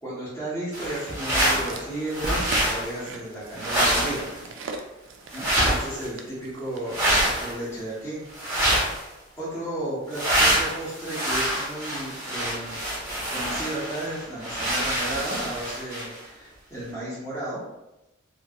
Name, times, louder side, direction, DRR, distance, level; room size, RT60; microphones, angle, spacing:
voice 1, 0.0-4.3 5.3-8.2 9.4-12.8 13.3-17.6, right 1 dB, 10° left, -10 dB, 0.8 m, -34 dB
sound 1, 0.7-1.8 2.1-2.9 3.6-4.4 5.3-6.1 6.9-7.5 8.3-9.0 10.1-16.2, right 1 dB, 10° right, 1.0 m, -25 dB
sound 2, 1.1-7.5 8.2-8.3, right 3 dB, 75° right, 0.4 m, -41 dB
2.8 x 2.4 x 2.7 m, 0.96 s
head